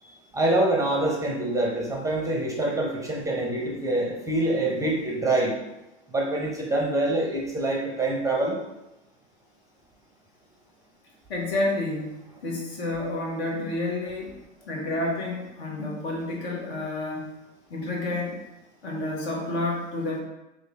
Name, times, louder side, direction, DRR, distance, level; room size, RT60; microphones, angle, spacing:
voice 1, 0.3-5.6 6.1-8.6, right 2 dB, 10° right, -1 dB, 0.6 m, -25 dB
voice 2, 4.7-5.0 11.3-14.3 14.7-17.3 17.7-18.4 18.8-20.2, left 2 dB, 60° left, -1 dB, 1.2 m, -30 dB
3.1 x 2.5 x 3.5 m, 0.93 s
hypercardioid pair, 90°, 36 cm